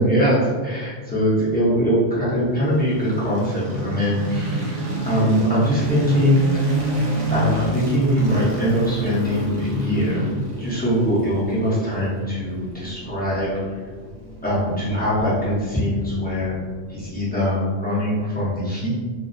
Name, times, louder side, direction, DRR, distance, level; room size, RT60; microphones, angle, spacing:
voice 1, 0.0-4.8 5.1-6.4 7.3-10.2 10.6-13.5 14.4-16.5 16.9-19.0, equal, 10° left, -11 dB, 0.6 m, -22 dB
sound 1, 2.6-16.7, equal, 45° right, 0.3 m, -28 dB
2.5 x 2.0 x 2.5 m, 1.5 s
omnidirectional pair, 1.2 m